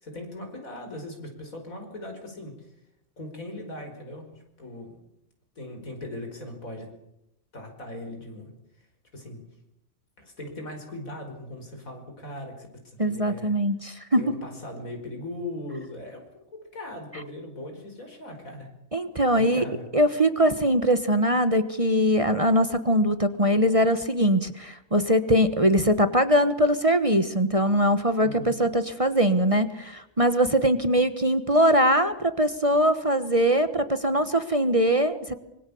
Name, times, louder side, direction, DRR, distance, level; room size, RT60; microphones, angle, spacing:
voice 1, 0.0-2.5 3.2-4.3 4.6-5.0 5.6-6.9 7.5-8.5 9.1-9.4 10.2-13.5 14.1-16.4 16.7-18.7 19.3-19.9 28.2-28.6, left 1 dB, 80° left, 4 dB, 5.6 m, -39 dB
voice 2, 13.0-14.2 18.9-19.6 19.9-35.3, equal, 25° right, 10 dB, 1.3 m, -22 dB
25.5 x 23.5 x 7.1 m, 0.83 s
omnidirectional pair, 1.4 m